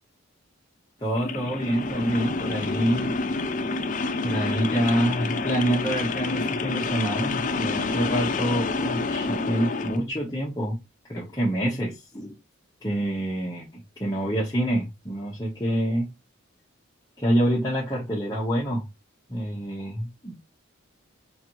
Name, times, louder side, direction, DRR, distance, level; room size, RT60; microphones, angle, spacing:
voice 1, 1.0-3.1 4.2-10.8 11.1-12.4 12.8-16.1 17.2-18.9 19.3-20.3, right 1 dB, 15° left, 0.8 m, -27 dB
sound 1, 1.1-10.0, left 3 dB, 35° left, 0.4 m, -28 dB
4.9 x 2.5 x 3.0 m
head